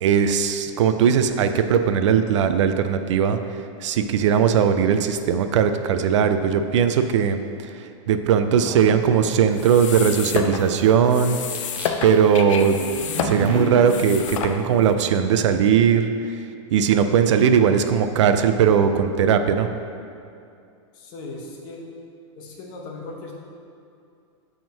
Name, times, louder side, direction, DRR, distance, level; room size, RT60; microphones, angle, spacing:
voice 1, 0.0-3.4 3.8-7.4 8.1-11.4 12.0-12.8 13.2-16.1 16.7-19.7, right 7 dB, 70° right, 9 dB, 0.4 m, -19 dB
sound 1, 8.6-11.0 11.4-12.3 13.2-13.6, right 1 dB, 10° right, 0.5 m, -40 dB
sound 2, 9.5-14.9, left 7 dB, 80° left, 0.5 m, -30 dB
sound 3, 12.5-16.2, right 2 dB, 30° right, 1.3 m, -32 dB
voice 2, 20.9-21.8 22.4-23.3, left 2 dB, 30° left, -1 dB, 0.8 m, -37 dB
5.2 x 3.7 x 5.6 m, 2.5 s
supercardioid pair, 165°, 16 cm